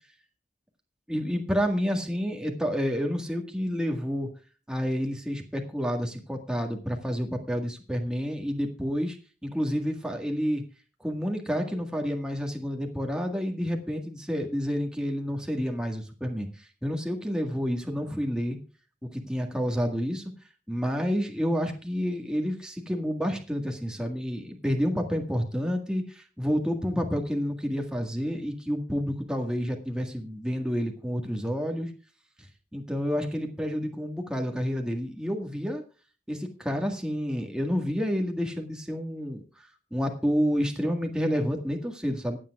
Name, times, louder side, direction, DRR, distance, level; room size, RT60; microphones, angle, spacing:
voice 1, 1.1-4.3 4.7-9.2 9.4-10.6 11.0-18.6 19.0-20.3 20.7-31.9 32.7-35.8 36.3-42.4, equal, 5° right, 2 dB, 1.7 m, -29 dB
25.5 x 8.6 x 2.4 m, 0.35 s
head